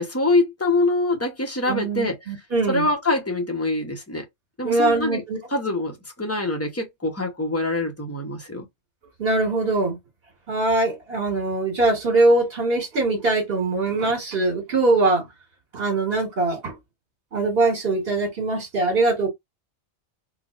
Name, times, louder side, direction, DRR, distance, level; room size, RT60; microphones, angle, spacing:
voice 1, 0.0-2.2 2.7-4.3 4.6-5.2 5.5-8.7, left 2 dB, 15° left, 0.9 m, -24 dB
voice 2, 1.7-2.9 4.6-5.4 9.2-10.0 10.5-15.2 15.7-16.7 17.3-19.3, right 2 dB, 60° right, 1.7 m, -22 dB
3.8 x 2.5 x 2.4 m
omnidirectional pair, 1.2 m